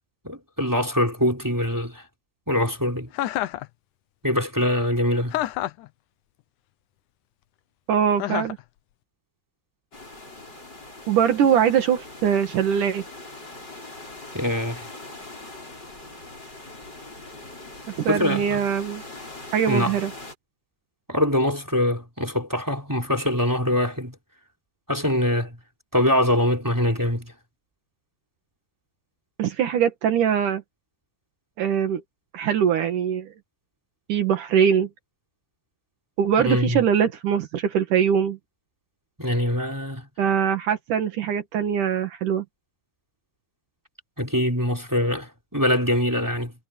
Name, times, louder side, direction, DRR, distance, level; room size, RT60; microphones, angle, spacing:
voice 1, 0.2-2.0 2.5-3.1 4.2-5.4 14.3-14.9 18.1-18.6 19.7-20.0 21.1-24.2 24.9-25.6 25.9-27.3 36.4-36.8 39.2-40.1 44.2-46.5, left 1 dB, 5° right, 3.7 m, -23 dB
Chuckle chortle, 3.1-3.7 5.3-5.9 8.2-8.6, left 14 dB, 80° left, 2.2 m, -27 dB
voice 2, 7.9-8.6 11.1-13.1 18.0-19.0 19.5-20.1 29.4-30.6 31.6-32.0 32.3-33.3 34.1-34.9 36.2-38.4 40.2-42.4, right 8 dB, 75° right, 3.2 m, -22 dB
sound 1, 9.9-20.3, left 2 dB, 30° left, 7.7 m, -41 dB
omnidirectional pair, 3.7 m